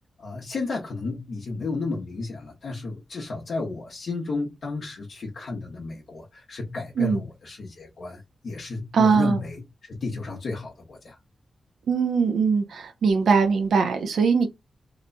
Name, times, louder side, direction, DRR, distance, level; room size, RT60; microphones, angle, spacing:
voice 1, 0.2-11.2, left 3 dB, 65° left, 0.9 m, -33 dB
voice 2, 8.9-9.4 11.9-14.5, right 5 dB, 90° right, 0.6 m, -21 dB
3.0 x 2.3 x 3.8 m
wide cardioid pair, 115°, 0 cm